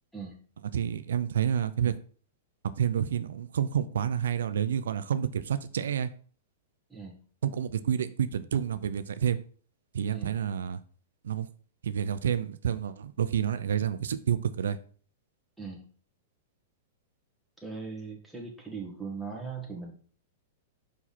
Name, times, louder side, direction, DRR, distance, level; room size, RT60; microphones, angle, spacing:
voice 1, 0.7-1.9 2.8-6.1 7.4-9.4 9.9-10.8 11.2-11.5 11.8-14.8, right 8 dB, 90° right, 13 dB, 0.5 m, -29 dB
voice 2, 6.9-7.2 10.1-10.3 15.6-15.9 17.6-19.9, right 5 dB, ahead, -2 dB, 1.7 m, -39 dB
5.6 x 4.8 x 4.2 m, 0.43 s
hypercardioid pair, 145°, 0 cm